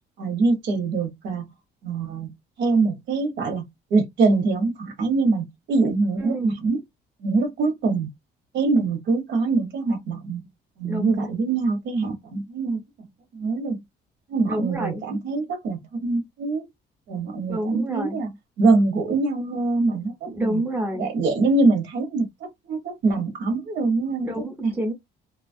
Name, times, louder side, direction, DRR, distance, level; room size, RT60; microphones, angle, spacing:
voice 1, 0.2-1.4 1.8-2.3 2.6-3.6 3.9-6.8 7.2-8.1 8.5-10.5 10.8-13.1 13.3-13.8 14.3-16.7 17.1-18.3 18.6-20.6 20.9-24.3 24.6-24.7, right 3 dB, 75° right, 1.0 m, -24 dB
voice 2, 6.2-6.6 10.8-11.3 14.5-15.0 17.5-18.2 20.3-21.1 24.2-24.9, right 1 dB, 10° right, 0.6 m, -28 dB
2.8 x 2.3 x 2.6 m
cardioid pair, 175°, 18 cm